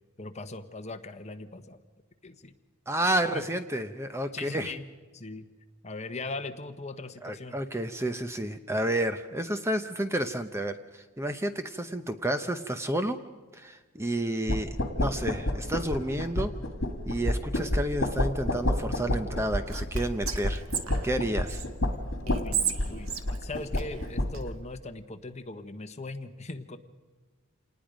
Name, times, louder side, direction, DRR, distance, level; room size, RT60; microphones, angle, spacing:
voice 1, 0.2-1.8 2.2-2.5 3.3-3.5 4.3-4.8 5.1-5.5 5.8-7.6 22.2-26.8, left 2 dB, 30° left, 8 dB, 1.2 m, -39 dB
voice 2, 2.9-4.7 7.2-13.2 13.5-16.5 17.1-20.6 21.0-21.6, right 1 dB, 10° right, 9 dB, 0.7 m, -30 dB
sound 1, 14.5-24.5, left 1 dB, 65° left, 2.4 m, -30 dB
Whispering, 19.7-21.7 22.3-24.4, right 8 dB, 75° right, 1.5 m, -34 dB
27.5 x 19.5 x 5.1 m, 1.4 s
head